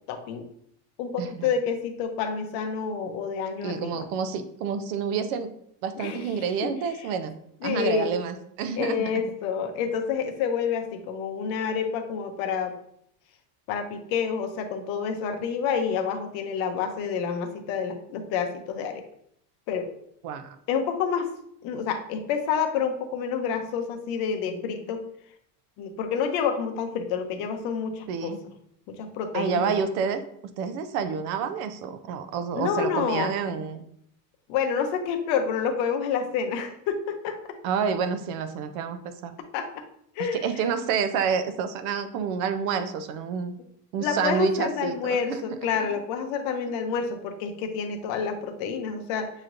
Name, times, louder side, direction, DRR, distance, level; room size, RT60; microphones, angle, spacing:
voice 1, 0.1-0.4 1.0-4.1 6.0-6.2 6.6-6.7 7.6-8.1 8.8-12.7 13.7-19.0 19.7-19.9 20.7-21.3 21.6-25.0 25.8-28.3 28.9-29.7 32.5-33.3 34.5-37.4 39.5-39.8 40.2-40.5 44.0-49.3, left 6 dB, 50° left, 6 dB, 0.7 m, -28 dB
voice 2, 1.2-1.5 3.6-5.5 5.8-7.4 7.6-9.2 20.2-20.6 28.1-28.4 29.3-33.8 37.6-39.3 40.2-43.6 43.9-45.6, right 6 dB, 65° right, 10 dB, 0.6 m, -29 dB
6.5 x 3.0 x 2.5 m, 0.70 s
cardioid pair, 155°, 47 cm